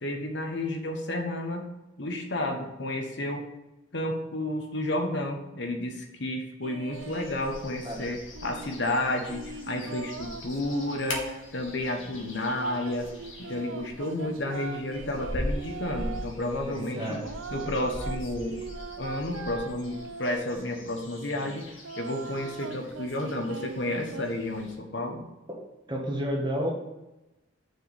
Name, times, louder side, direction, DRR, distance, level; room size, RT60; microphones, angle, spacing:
voice 1, 0.0-1.7 2.0-3.5 3.9-13.1 13.4-17.2 17.5-18.6 19.0-25.2, left 1 dB, 65° left, 3 dB, 1.1 m, -31 dB
sound 1, 6.6-7.4 8.0-11.5 12.0-16.3 16.8-20.6 21.2-24.3, right 4 dB, 90° right, 0.6 m, -41 dB
Birds Austria Waldviertel, 6.9-24.8, left 1 dB, 80° left, 1.7 m, -41 dB
voice 2, 16.7-17.2 25.5-25.6 25.9-26.7, equal, 20° right, -1 dB, 1.5 m, -30 dB
6.3 x 4.7 x 6.5 m, 0.99 s
head